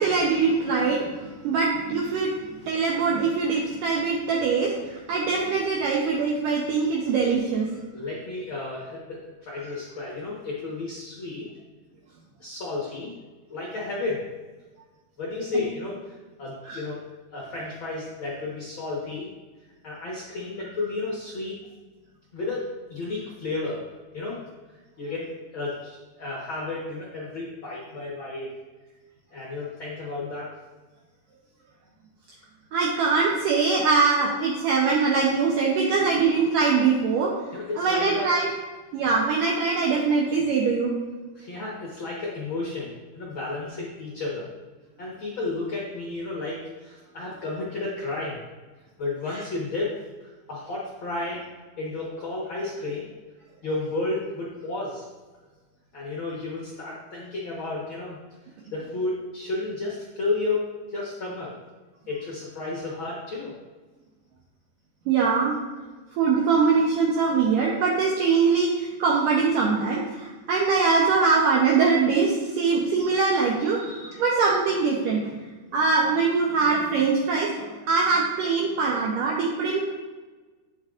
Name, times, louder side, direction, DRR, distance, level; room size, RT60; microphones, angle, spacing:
voice 1, 0.0-2.3 2.7-7.7 15.5-15.6 16.7-16.8 32.7-37.3 37.8-38.5 38.9-40.9 65.1-65.6 66.2-75.3 75.7-79.9, right 4 dB, 75° right, -2 dB, 2.2 m, -22 dB
voice 2, 7.9-11.5 12.4-13.1 13.5-14.3 15.2-16.1 16.4-17.0 17.3-19.3 19.8-21.6 22.3-23.9 24.1-24.4 25.0-28.5 29.3-30.5 37.5-38.3 41.3-44.5 45.0-48.4 49.0-51.4 51.8-53.1 53.6-55.0 55.9-58.2 58.7-60.6 60.9-61.5 62.1-63.5, left 3 dB, 65° left, -5 dB, 1.2 m, -32 dB
9.0 x 8.5 x 2.5 m, 1.3 s
omnidirectional pair, 4.4 m